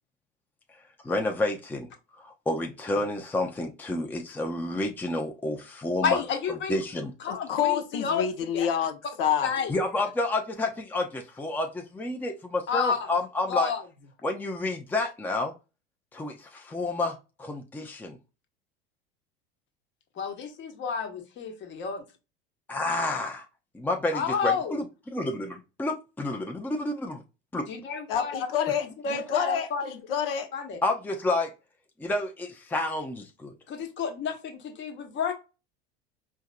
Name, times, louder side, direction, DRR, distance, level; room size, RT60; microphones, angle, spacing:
voice 1, 1.0-1.9 2.2-6.2 6.7-7.1 9.7-13.7 14.2-15.5 16.1-18.2 22.7-23.5 23.7-27.2 27.5-27.6 30.8-31.5 32.0-33.5, left 2 dB, 5° left, 0.6 m, -30 dB
voice 2, 6.0-6.8 7.2-8.2 8.5-8.7 9.4-9.7 12.7-13.1 13.5-13.8 20.1-22.0 24.1-24.8 27.7-28.5 28.8-29.9 30.5-30.8 33.7-35.3, left 6 dB, 40° left, 1.1 m, -30 dB
voice 3, 7.3-9.5 28.1-30.5, left 8 dB, 70° left, 0.7 m, -28 dB
4.5 x 2.7 x 2.2 m
hypercardioid pair, 80°, 30 cm